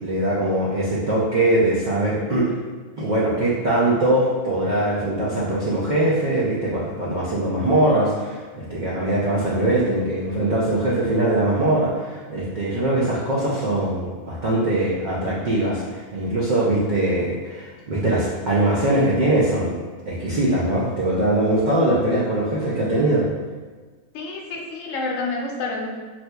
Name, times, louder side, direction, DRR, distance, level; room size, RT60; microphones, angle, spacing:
voice 1, 0.0-2.5 3.0-19.8 20.1-23.3, right 1 dB, 80° right, -7 dB, 0.4 m, -21 dB
voice 2, 24.1-25.9, left 3 dB, 70° left, 0 dB, 0.9 m, -28 dB
4.2 x 2.5 x 2.2 m, 1.4 s
omnidirectional pair, 1.5 m